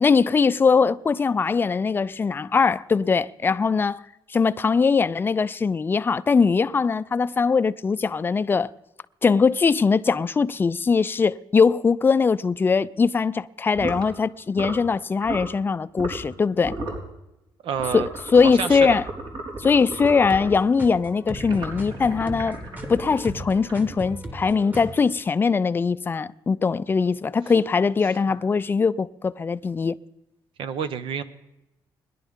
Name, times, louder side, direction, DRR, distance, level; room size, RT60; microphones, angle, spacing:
voice 1, 0.0-4.0 4.3-8.7 9.2-16.7 17.9-19.0 19.6-22.6 22.9-29.9, left 5 dB, 25° left, 0.4 m, -21 dB
sound 1, 13.7-14.1 14.5-14.9 15.2-15.5 16.0-16.3 16.6-17.1 17.7-20.6 21.3-24.1, right 2 dB, 60° right, 3.7 m, -34 dB
voice 2, 17.6-18.1 18.4-19.0 30.6-31.2, right 7 dB, 80° right, 1.0 m, -28 dB
sound 2, 19.9-25.0, equal, 20° right, 1.6 m, -38 dB
21.5 x 11.0 x 3.7 m
cardioid pair, 125°, 9 cm